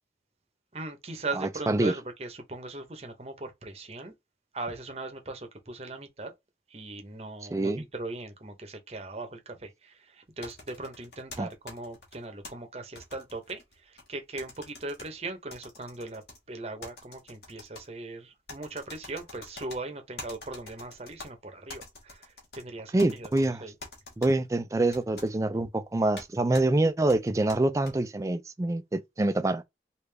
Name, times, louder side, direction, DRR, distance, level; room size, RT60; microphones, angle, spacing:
voice 1, 0.7-4.1 4.5-6.3 6.7-16.2 16.5-23.7, right 2 dB, 35° right, 0.8 m, -39 dB
voice 2, 1.4-1.9 7.5-7.8 11.4-11.5 22.9-23.6 24.2-29.6, right 2 dB, 15° right, 0.3 m, -26 dB
sound 1, 10.4-12.5 13.0-14.1 14.4-15.1 15.5-16.4 16.8-17.9 18.5-19.8 20.2-21.3 21.7-22.6 23.0-23.5 23.8-24.3 24.9-25.3 26.2-26.3 26.5-26.7 27.1-27.9, left 3 dB, 65° left, 1.4 m, -45 dB
3.4 x 2.5 x 3.3 m
head